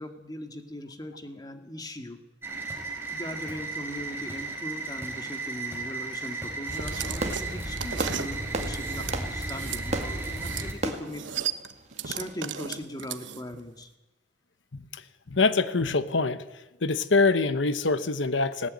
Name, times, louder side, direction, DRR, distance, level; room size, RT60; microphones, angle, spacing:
voice 1, 0.0-2.2 3.1-11.2 12.0-13.9, left 1 dB, 20° left, 6 dB, 2.0 m, -39 dB
sound 1, 2.4-10.7, right 2 dB, 15° right, 4.9 m, -34 dB
sound 2, 6.7-9.8 10.2-10.7 10.9-13.6, right 8 dB, 80° right, 1.2 m, -35 dB
Fireworks, 6.9-12.5, right 2 dB, 40° right, 2.2 m, -36 dB
voice 2, 14.7-15.0 15.3-16.4 16.8-18.7, left 3 dB, 85° left, 13 dB, 1.1 m, -24 dB
19.0 x 17.5 x 9.6 m, 1.0 s
head